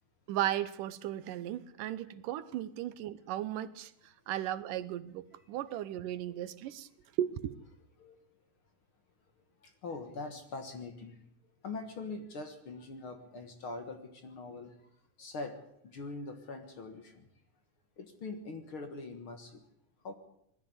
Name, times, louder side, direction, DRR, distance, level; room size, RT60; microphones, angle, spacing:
voice 1, 0.3-3.9 4.3-6.9 7.2-7.6, right 12 dB, 80° right, 2.5 m, -36 dB
voice 2, 5.4-5.7 6.3-6.4 7.0-7.1 8.0-8.2 9.4-14.9 15.2-17.3 18.0-19.7 20.0-20.1, left 3 dB, 50° left, 2.0 m, -43 dB
20.0 x 13.5 x 9.6 m
omnidirectional pair, 3.8 m